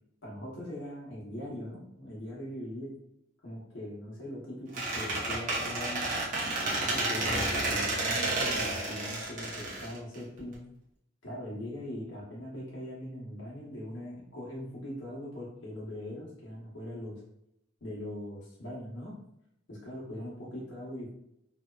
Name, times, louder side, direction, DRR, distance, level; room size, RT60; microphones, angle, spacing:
voice 1, 0.2-2.9 3.4-6.1 6.6-10.6 11.2-17.2 17.8-19.2 19.7-21.1, left 1 dB, 85° left, -4 dB, 0.8 m, -41 dB
Squeak, 4.7-10.5, right 2 dB, 45° right, 0.7 m, -31 dB
2.7 x 2.2 x 2.2 m, 0.77 s
head